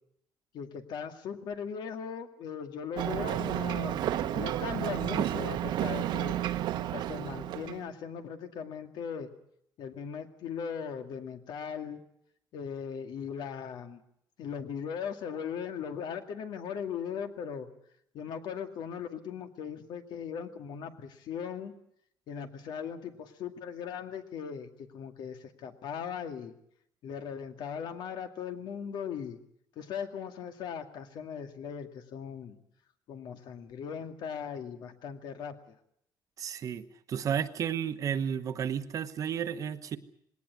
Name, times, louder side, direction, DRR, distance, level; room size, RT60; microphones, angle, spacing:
voice 1, 0.5-6.4 6.9-9.3 9.8-12.0 12.5-14.0 14.4-17.7 18.1-21.7 22.3-26.5 27.0-29.4 29.8-32.6 33.1-35.8, left 7 dB, 70° left, 6 dB, 2.3 m, -39 dB
Ocean, 3.0-7.9, right 12 dB, 75° right, 1.2 m, -31 dB
voice 2, 36.4-40.0, right 8 dB, 45° right, 11 dB, 1.1 m, -32 dB
20.0 x 18.0 x 9.5 m, 0.72 s
cardioid pair, 145°, 8 cm